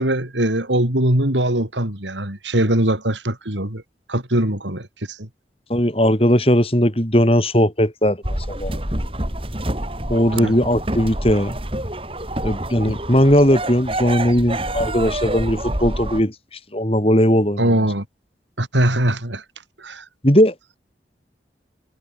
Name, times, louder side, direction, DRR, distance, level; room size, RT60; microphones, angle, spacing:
voice 1, 0.0-3.8 4.1-5.3 10.3-10.5 17.6-18.1 18.6-19.4 19.8-20.1, right 1 dB, 90° right, 5.1 m, -21 dB
voice 2, 5.7-8.2 8.6-8.8 10.1-11.6 12.4-16.3 16.7-17.6 20.2-20.8, equal, 30° left, 7.6 m, -18 dB
sound 1, 8.2-16.2, right 1 dB, 30° right, 6.4 m, -27 dB
head